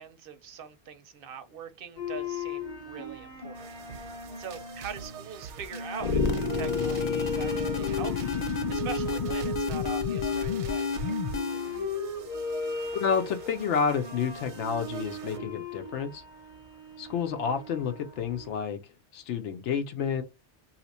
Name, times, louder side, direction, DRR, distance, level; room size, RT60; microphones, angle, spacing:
voice 1, 0.0-11.0, right 6 dB, 60° right, 0.7 m, -42 dB
sound 1, 2.0-18.6, left 2 dB, 30° left, 0.9 m, -36 dB
sound 2, 3.5-15.5, right 7 dB, 90° right, 0.9 m, -46 dB
sound 3, 6.0-11.8, left 5 dB, 55° left, 0.4 m, -30 dB
voice 2, 12.9-16.2 17.0-18.8 19.1-20.2, left 6 dB, 85° left, 0.9 m, -29 dB
2.8 x 2.4 x 4.0 m
omnidirectional pair, 1.2 m